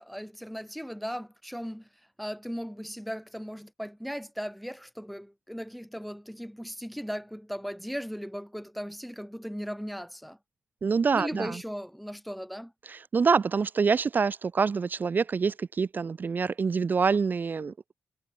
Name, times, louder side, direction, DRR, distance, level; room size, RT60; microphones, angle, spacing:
voice 1, 0.0-1.9 2.2-10.4 11.1-12.7, equal, ahead, 3.4 m, -37 dB
voice 2, 10.8-11.6 12.9-17.7, right 5 dB, 45° right, 3.0 m, -26 dB
cardioid pair, 90°, 4 cm